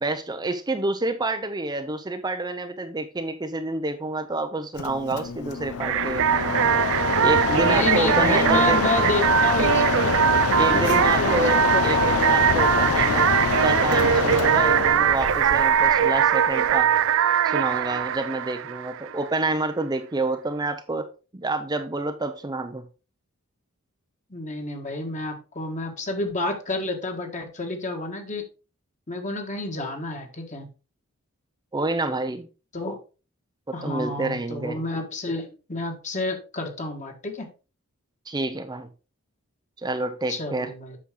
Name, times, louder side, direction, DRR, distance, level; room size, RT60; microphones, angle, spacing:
voice 1, 0.0-6.6 7.2-8.9 10.6-16.9 17.4-21.1 21.3-22.9 31.7-32.5 33.7-34.8 38.3-38.9 39.8-40.7, right 2 dB, 20° right, 7 dB, 0.6 m, -28 dB
Mechanisms, 4.7-17.1, left 5 dB, 90° left, 0.6 m, -26 dB
sound 1, 5.8-19.3, right 9 dB, 60° right, 0.4 m, -21 dB
voice 2, 7.5-10.1 10.7-11.9 24.3-28.4 29.1-30.7 32.7-33.0 33.7-37.5 40.3-41.0, left 2 dB, 35° left, 4 dB, 1.8 m, -30 dB
8.4 x 6.4 x 3.8 m, 0.33 s
head